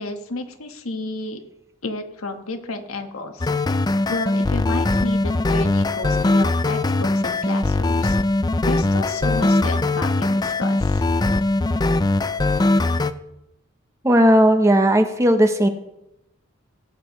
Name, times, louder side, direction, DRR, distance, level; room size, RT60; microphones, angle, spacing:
voice 1, 0.0-1.4 1.8-3.5 4.1-8.2 8.6-11.0, left 2 dB, 80° left, 5 dB, 1.3 m, -31 dB
sound 1, 3.4-13.1, left 2 dB, 20° left, 0.3 m, -20 dB
voice 2, 14.0-15.7, equal, 15° right, 7 dB, 0.7 m, -16 dB
18.0 x 8.4 x 3.1 m, 0.85 s
head